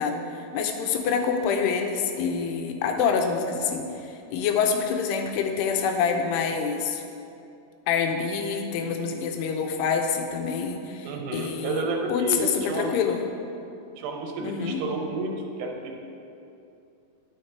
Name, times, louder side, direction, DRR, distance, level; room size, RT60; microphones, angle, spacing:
voice 1, 0.0-7.0 7.9-11.8 12.1-13.2 14.4-14.8, left 6 dB, 90° left, 4 dB, 2.8 m, -26 dB
voice 2, 11.0-13.0 14.0-16.0, right 3 dB, 90° right, 2 dB, 3.0 m, -31 dB
9.7 x 6.5 x 4.5 m, 2.7 s
omnidirectional pair, 4.7 m